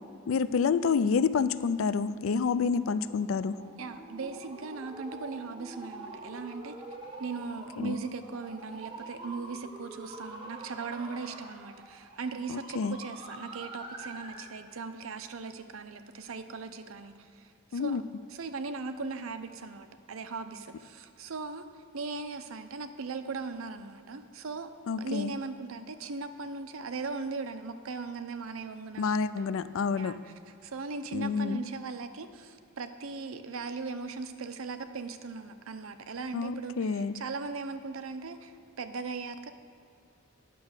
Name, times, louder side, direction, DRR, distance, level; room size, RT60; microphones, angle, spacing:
voice 1, 0.3-3.6 7.8-8.0 12.5-13.0 17.7-18.0 24.9-25.3 29.0-30.1 31.1-31.6 36.3-37.2, left 5 dB, 70° left, 15 dB, 0.4 m, -28 dB
sound 1, 2.0-14.5, right 2 dB, 20° right, 1.2 m, -46 dB
voice 2, 3.8-6.8 7.2-17.1 17.7-18.0 18.3-21.6 21.9-24.7 25.0-29.6 30.0-30.2 30.6-38.5 38.8-39.5, right 4 dB, 75° right, 9 dB, 0.6 m, -38 dB
9.4 x 6.1 x 6.5 m, 2.3 s
head